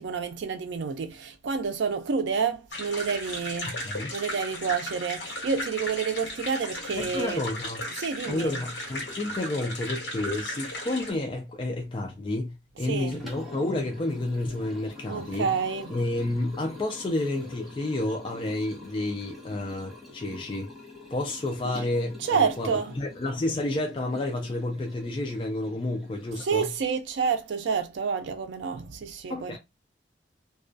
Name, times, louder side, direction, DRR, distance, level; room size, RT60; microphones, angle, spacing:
voice 1, 0.0-3.8 4.1-7.4 8.0-8.5 12.9-13.2 15.1-16.0 22.2-22.9 26.4-29.6, right 5 dB, 80° right, 0.4 m, -29 dB
sound 1, 2.7-11.1, left 1 dB, 75° left, 1.1 m, -36 dB
voice 2, 3.7-4.1 6.9-7.9 8.2-15.5 15.9-20.7 21.1-26.7 29.3-29.6, left 2 dB, 30° left, 0.4 m, -30 dB
Liquid, 13.0-27.1, left 2 dB, ahead, 0.9 m, -45 dB
2.3 x 2.2 x 2.5 m
head